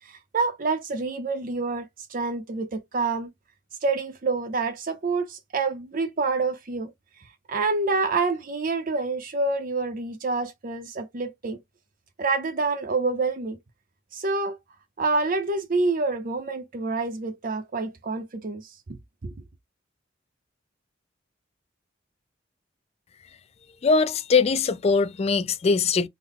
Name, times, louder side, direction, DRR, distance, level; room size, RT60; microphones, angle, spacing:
voice 1, 0.0-3.3 3.8-6.9 7.5-11.6 12.2-13.6 14.1-14.6 15.0-18.8 19.2-19.3, right 3 dB, 45° right, 0.6 m, -27 dB
voice 2, 23.8-26.1, left 4 dB, 35° left, 0.3 m, -21 dB
3.7 x 2.0 x 3.5 m
head